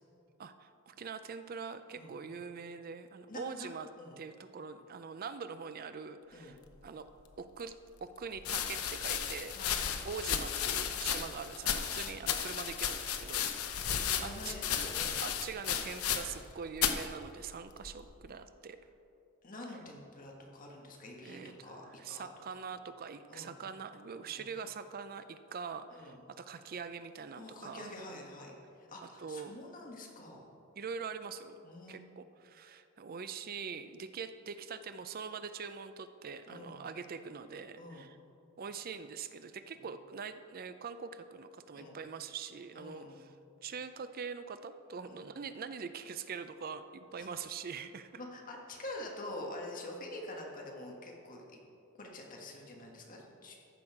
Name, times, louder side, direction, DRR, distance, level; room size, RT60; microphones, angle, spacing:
voice 1, 0.4-3.9 4.2-7.1 7.4-7.7 8.0-9.6 10.0-14.0 14.2-14.6 15.2-18.8 21.2-21.7 22.0-27.9 29.2-29.6 30.8-31.6 31.9-38.2 38.6-43.3 43.6-48.2, right 6 dB, 40° right, 11 dB, 0.4 m, -43 dB
voice 2, 3.3-4.2 6.3-6.5 9.5-9.8 11.2-11.4 13.8-15.2 16.0-16.2 19.4-22.3 23.3-23.5 24.2-24.4 25.9-26.2 27.3-30.5 31.6-32.0 36.5-36.8 37.8-38.1 41.7-42.0 42.7-43.2 45.1-45.2 47.2-47.3 48.2-51.6 51.9-53.6, left 1 dB, 40° left, 0 dB, 1.4 m, -46 dB
sound 1, 7.3-7.4 8.4-16.5 16.8-17.1 17.8-18.2, left 8 dB, 80° left, 0.8 m, -34 dB
14.0 x 6.3 x 4.8 m, 2.7 s
head